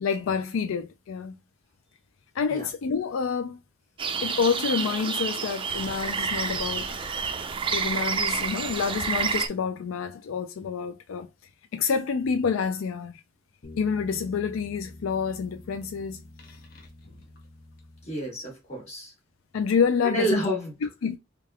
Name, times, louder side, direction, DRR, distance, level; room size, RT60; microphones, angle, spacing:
voice 1, 0.0-1.4 2.4-3.6 4.2-7.0 7.7-11.3 11.7-13.1 13.8-16.2 19.5-20.6 21.0-21.2, left 6 dB, 85° left, 0.4 m, -28 dB
sound 1, 4.0-9.5, right 5 dB, 25° right, 0.4 m, -29 dB
sound 2, 13.6-18.5, left 2 dB, 50° left, 0.7 m, -47 dB
voice 2, 18.0-19.1 20.0-20.9, right 1 dB, 35° left, 1.7 m, -30 dB
3.5 x 2.3 x 3.3 m
head